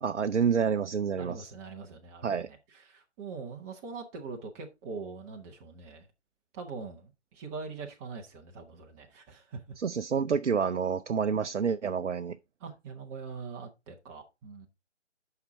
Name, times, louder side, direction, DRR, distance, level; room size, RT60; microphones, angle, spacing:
voice 1, 0.0-1.5 2.2-2.5 9.8-12.4, right 6 dB, 80° right, 0.6 m, -28 dB
voice 2, 1.2-6.1 6.5-9.7 12.6-14.7, right 4 dB, 15° right, 1.0 m, -43 dB
9.5 x 5.7 x 3.7 m
figure-of-eight pair, 140°, 36 cm